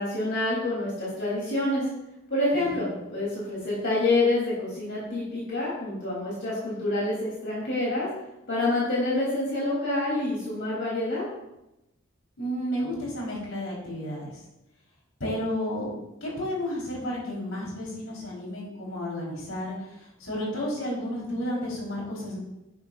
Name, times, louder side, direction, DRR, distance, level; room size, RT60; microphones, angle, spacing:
voice 1, 0.0-1.8 2.3-8.1 8.5-11.2, left 2 dB, 60° left, -6 dB, 3.2 m, -27 dB
voice 2, 2.5-2.9 12.4-14.4 15.2-15.9 16.2-22.4, equal, 80° left, -4 dB, 3.9 m, -32 dB
11.0 x 10.5 x 2.5 m, 0.92 s
head